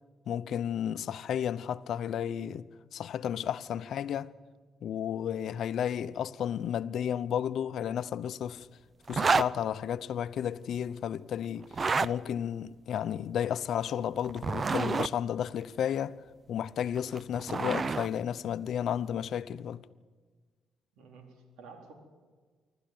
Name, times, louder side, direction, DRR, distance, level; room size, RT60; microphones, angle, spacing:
voice 1, 0.3-4.3 4.8-8.7 9.1-11.7 12.0-16.2 16.5-19.8, left 9 dB, 70° left, 0.8 m, -32 dB
sound 1, 9.1-9.5 11.6-12.1 14.2-15.1 17.0-18.1, right 4 dB, 35° right, 0.5 m, -28 dB
voice 2, 20.9-21.9, right 4 dB, 85° right, 4.1 m, -51 dB
26.5 x 13.0 x 9.4 m
cardioid pair, 90°, 0 cm